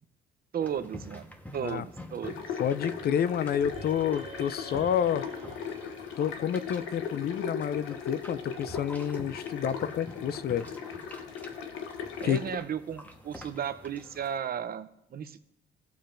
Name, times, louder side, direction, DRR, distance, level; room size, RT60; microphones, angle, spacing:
voice 1, 0.5-2.6 12.2-15.4, right 8 dB, 50° right, 0.6 m, -35 dB
sound 1, 0.6-14.4, left 1 dB, 10° left, 1.1 m, -48 dB
sound 2, 2.2-12.6, left 6 dB, 90° left, 0.9 m, -38 dB
voice 2, 2.6-5.3 6.2-10.7 12.2-12.4, left 9 dB, 55° left, 0.4 m, -29 dB
sound 3, 3.6-7.2, right 3 dB, 30° right, 1.3 m, -48 dB
16.5 x 7.0 x 2.5 m
cardioid pair, 90°, 20 cm